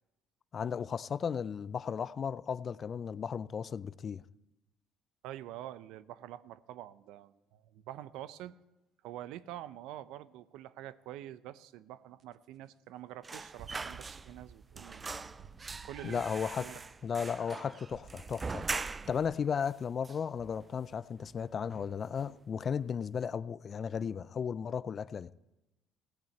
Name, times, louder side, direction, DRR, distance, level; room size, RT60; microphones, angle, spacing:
voice 1, 0.5-4.2 16.0-16.7 17.0-25.3, left 7 dB, 40° left, 0.4 m, -35 dB
voice 2, 5.2-8.5 9.0-15.3 15.8-16.2 16.6-16.8, right 13 dB, 75° right, 0.6 m, -46 dB
sound 1, 12.2-12.3 13.6-19.4, right 6 dB, 50° right, 0.8 m, -54 dB
sound 2, 13.2-14.5 14.8-19.3 19.6-19.7 20.0-20.9 21.2-21.4 21.7-22.4 22.7-22.9, right 4 dB, 25° right, 0.4 m, -42 dB
16.5 x 6.3 x 8.5 m
supercardioid pair, 85°, 0 cm